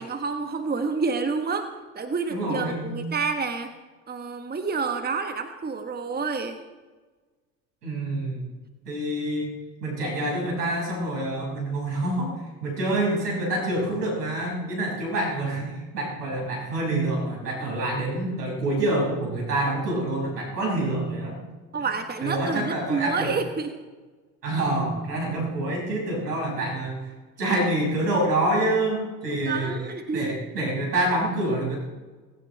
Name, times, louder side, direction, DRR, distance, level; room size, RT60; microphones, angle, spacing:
voice 1, 0.0-3.7 4.1-6.6 21.7-23.7 29.3-30.4, right 4 dB, 20° right, 7 dB, 1.4 m, -29 dB
voice 2, 2.3-3.0 7.8-8.4 8.8-9.5 9.8-21.4 22.2-23.3 24.4-27.1 27.4-29.7 30.1-31.8, right 1 dB, 80° right, -2 dB, 6.4 m, -27 dB
19.5 x 16.0 x 3.4 m, 1.3 s
figure-of-eight pair, 60°, 48 cm